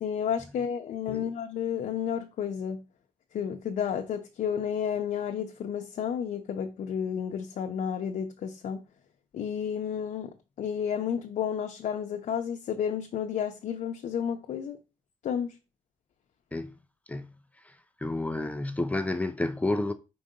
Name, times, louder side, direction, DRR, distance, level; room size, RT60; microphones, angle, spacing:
voice 1, 0.0-2.8 3.3-8.8 9.3-10.3 10.6-14.8 15.2-15.5, left 8 dB, 85° left, 0.6 m, -31 dB
voice 2, 18.0-19.9, left 2 dB, 10° left, 0.4 m, -30 dB
4.6 x 3.9 x 5.2 m
wide cardioid pair, 160°, 13 cm